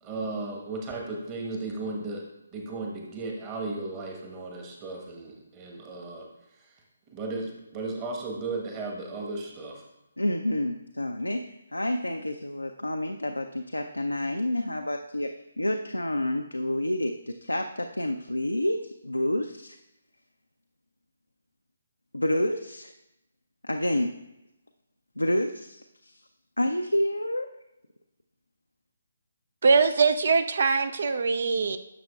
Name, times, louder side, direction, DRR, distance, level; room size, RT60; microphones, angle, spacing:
voice 1, 0.0-2.2 2.5-6.3 7.1-9.8, right 3 dB, 20° right, 0 dB, 1.2 m, -35 dB
voice 2, 10.2-15.3 15.6-19.8 22.1-22.9 23.6-24.1 25.2-26.2 26.6-27.5, left 1 dB, 80° left, 4 dB, 0.4 m, -29 dB
voice 3, 29.6-31.8, right 4 dB, 50° right, 11 dB, 0.4 m, -22 dB
11.0 x 6.5 x 2.4 m, 0.91 s
figure-of-eight pair, 140°, 0 cm